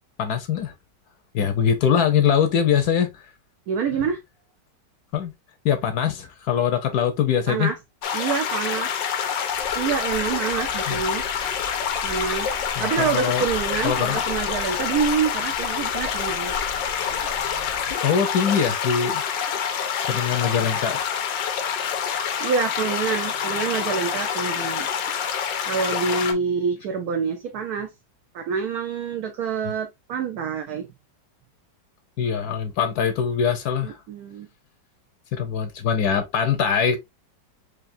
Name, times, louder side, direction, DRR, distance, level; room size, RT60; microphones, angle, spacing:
voice 1, 0.2-0.7 1.3-3.2 5.1-5.3 5.6-7.7 10.9-11.0 12.8-13.4 13.8-14.2 18.0-19.2 20.0-21.0 32.2-34.0 35.3-37.0, left 7 dB, 65° left, 1.1 m, -22 dB
voice 2, 3.7-4.2 7.5-7.8 8.1-8.9 9.7-11.2 12.0-12.5 12.8-16.6 22.4-24.9 25.7-27.9 28.3-30.8 33.8-34.5, right 6 dB, 65° right, 1.0 m, -26 dB
sound 1, 8.0-26.3, left 8 dB, 90° left, 1.5 m, -27 dB
sound 2, 9.5-17.9, left 1 dB, 45° right, 1.6 m, -41 dB
4.9 x 2.8 x 2.5 m
omnidirectional pair, 1.9 m